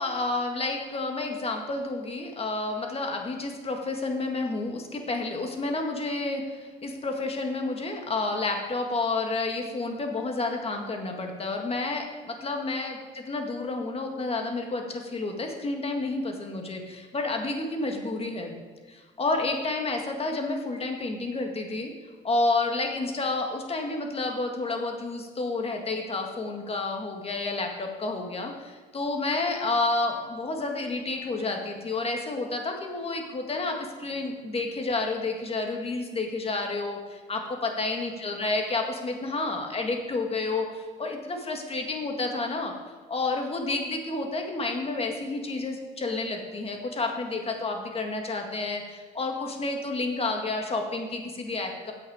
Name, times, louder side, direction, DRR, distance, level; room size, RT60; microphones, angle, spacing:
voice 1, 0.0-18.6 18.9-21.9 22.2-42.7 43.1-51.9, left 3 dB, 30° left, 3 dB, 1.8 m, -30 dB
9.6 x 8.0 x 4.9 m, 1.5 s
cardioid pair, 85°, 19 cm